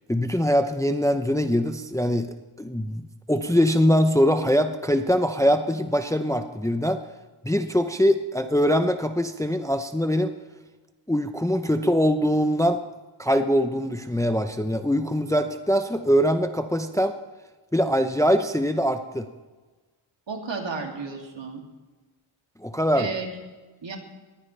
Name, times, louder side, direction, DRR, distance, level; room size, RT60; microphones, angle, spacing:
voice 1, 0.1-3.0 3.3-7.0 7.4-10.3 11.1-12.8 13.2-17.1 17.7-19.3 22.6-23.1, equal, 5° left, 8 dB, 0.7 m, -22 dB
voice 2, 20.3-21.6 22.9-23.3 23.8-24.0, right 4 dB, 60° right, 1 dB, 2.8 m, -32 dB
20.5 x 15.5 x 3.3 m, 1.2 s
wide cardioid pair, 105°, 50 cm